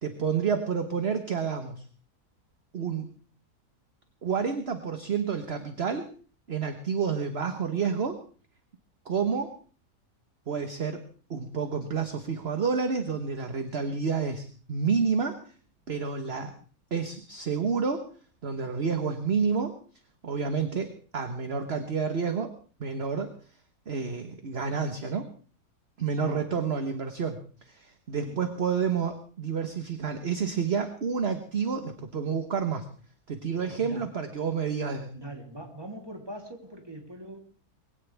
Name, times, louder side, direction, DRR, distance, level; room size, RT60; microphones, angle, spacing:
voice 1, 0.0-1.8 2.7-3.1 4.2-6.1 6.5-8.2 9.0-9.5 10.5-15.4 15.9-16.5 16.9-18.1 18.4-19.8 20.2-22.5 22.8-23.3 23.9-25.3 26.0-27.4 27.6-32.9 33.3-35.1, right 6 dB, 45° right, 7 dB, 1.5 m, -29 dB
voice 2, 33.7-34.0 35.1-37.4, right 1 dB, 15° right, 1 dB, 3.3 m, -42 dB
21.5 x 17.0 x 3.5 m, 0.40 s
omnidirectional pair, 1.6 m